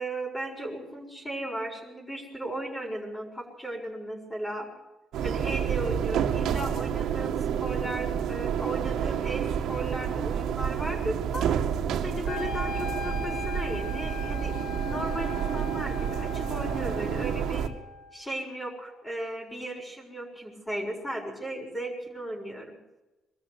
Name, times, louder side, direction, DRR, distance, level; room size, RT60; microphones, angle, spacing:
voice 1, 0.0-4.7 5.2-7.3 7.6-11.5 12.0-17.7 18.1-22.7, right 1 dB, 15° left, -1 dB, 6.9 m, -36 dB
sound 1, 5.1-17.7, right 8 dB, 85° right, 2.0 m, -29 dB
Wind instrument woodwind instrument, 12.3-18.3, left 4 dB, 75° left, 1.4 m, -39 dB
23.0 x 13.5 x 8.3 m, 1.1 s
cardioid pair, 90°, 0 cm